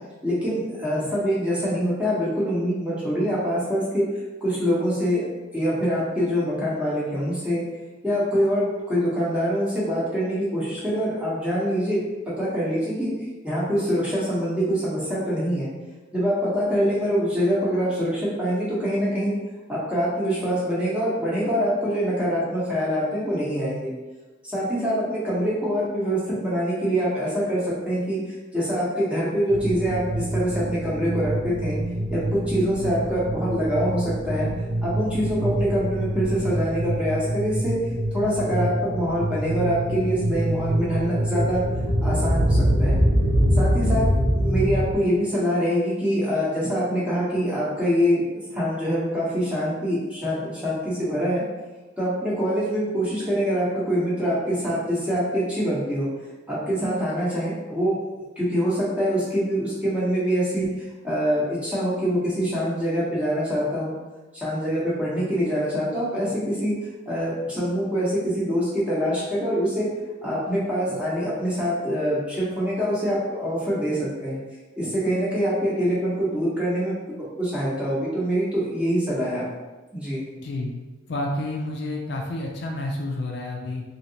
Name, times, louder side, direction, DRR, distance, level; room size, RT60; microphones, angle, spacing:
voice 1, 0.2-4.1 4.4-5.2 5.5-7.6 8.0-12.0 12.4-13.1 13.4-15.7 16.1-19.3 19.7-23.9 24.4-31.7 32.1-34.5 34.8-37.8 38.1-41.6 42.0-43.0 43.6-44.1 44.4-48.2 48.5-51.4 52.0-56.1 56.5-58.0 58.4-60.7 61.0-64.0 64.3-66.7 67.1-69.9 70.2-74.4 74.8-76.9 77.4-79.4 79.9-80.2, equal, 5° right, -8 dB, 0.9 m, -24 dB
sound 1, 29.5-44.9, right 1 dB, 80° right, 0.6 m, -24 dB
voice 2, 80.4-80.8 81.1-83.8, left 1 dB, 55° left, 0 dB, 0.4 m, -29 dB
3.1 x 2.7 x 2.8 m, 1.2 s
head